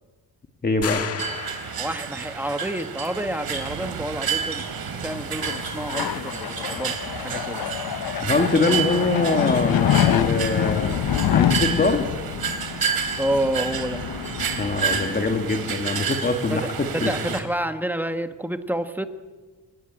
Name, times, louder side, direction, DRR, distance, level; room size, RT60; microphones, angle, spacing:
voice 1, 0.6-1.1 8.2-11.0 11.3-12.0 14.6-17.1, left 3 dB, 25° left, 4 dB, 1.9 m, -23 dB
sound 1, 0.8-2.3, left 6 dB, 40° left, 1.7 m, -32 dB
sound 2, 1.2-17.4, right 6 dB, 80° right, 3.3 m, -30 dB
voice 2, 1.8-4.6 5.0-6.9 7.2-7.8 13.2-14.0 16.5-19.1, right 1 dB, 5° right, 8 dB, 1.3 m, -29 dB
sound 3, 4.8-16.1, left 11 dB, 75° left, 0.9 m, -27 dB
28.0 x 18.5 x 8.8 m, 1.4 s
wide cardioid pair, 160°, 36 cm